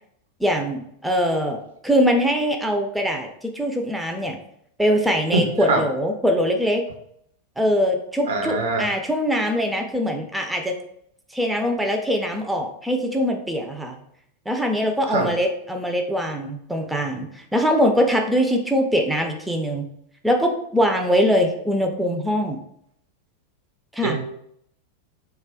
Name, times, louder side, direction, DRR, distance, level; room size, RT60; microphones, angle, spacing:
voice 1, 0.4-3.3 3.5-4.4 4.8-6.8 7.6-10.8 11.3-14.0 14.5-19.9 20.2-22.6 23.9-24.2, equal, 5° right, 3 dB, 0.3 m, -22 dB
voice 2, 5.3-5.8 8.3-8.9 15.1-15.3 24.0-24.2, right 3 dB, 60° right, 3 dB, 0.5 m, -23 dB
2.2 x 2.1 x 3.4 m, 0.70 s
figure-of-eight pair, 90°, 0 cm